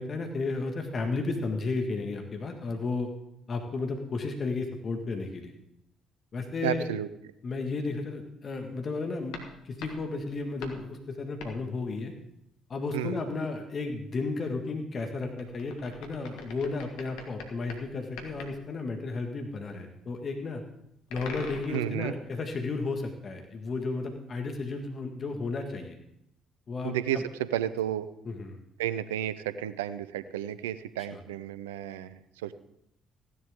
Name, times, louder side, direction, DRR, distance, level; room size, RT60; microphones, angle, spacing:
voice 1, 0.0-3.1 3.5-5.5 6.3-6.9 7.4-9.4 9.6-12.1 12.7-20.6 21.1-26.0 26.7-27.2 28.3-28.6 31.1-31.2, left 3 dB, 45° left, 4 dB, 1.8 m, -33 dB
voice 2, 6.6-7.1 12.9-13.2 21.7-22.1 26.8-28.1 28.8-32.5, right 11 dB, 85° right, 14 dB, 0.5 m, -32 dB
sound 1, 9.3-10.9 11.4-11.7 15.4-17.9 18.2-18.6 21.1-22.4 23.8-23.9, left 4 dB, 75° left, 1.7 m, -43 dB
15.5 x 11.0 x 3.7 m, 0.77 s
hypercardioid pair, 50°, 0 cm